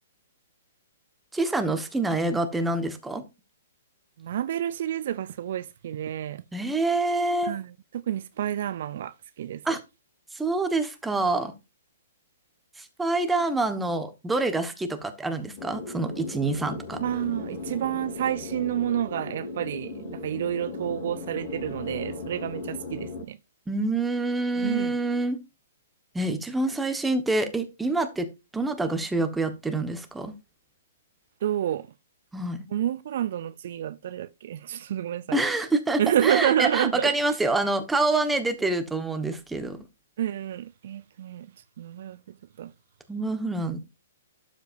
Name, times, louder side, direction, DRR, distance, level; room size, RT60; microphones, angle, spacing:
voice 1, 1.3-3.2 6.5-7.5 9.6-9.8 10.3-11.5 12.8-17.0 23.7-25.4 26.1-28.3 28.5-30.3 32.3-32.7 35.3-39.8 43.1-43.8, right 2 dB, 5° right, 1.2 m, -26 dB
voice 2, 4.2-6.4 7.5-7.7 8.1-9.6 17.0-23.4 24.6-24.9 31.4-31.9 32.7-35.4 36.0-37.1 40.2-41.5 41.8-42.2 42.6-42.7, right 11 dB, 55° right, 0.4 m, -29 dB
sound 1, 15.6-23.2, left 3 dB, 50° left, 3.4 m, -37 dB
12.0 x 5.1 x 2.5 m
figure-of-eight pair, 120°, 0 cm